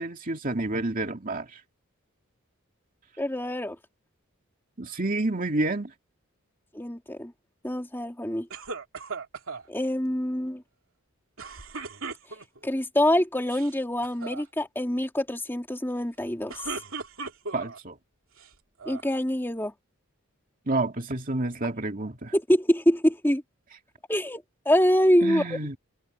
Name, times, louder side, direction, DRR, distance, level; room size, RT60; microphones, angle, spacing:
voice 1, 0.0-1.6 4.8-5.9 17.5-18.0 20.7-22.3 25.2-25.8, right 2 dB, 40° right, 2.4 m, -29 dB
voice 2, 3.2-3.8 6.7-7.3 7.6-8.5 9.7-10.6 12.6-16.5 18.9-19.7 22.3-23.4 24.1-25.4, equal, 10° left, 2.7 m, -25 dB
sound 1, 8.5-9.7 11.4-12.7 13.4-13.7 14.0-14.4 16.3-17.8 18.4-19.1, right 4 dB, 70° right, 2.8 m, -37 dB
open air
head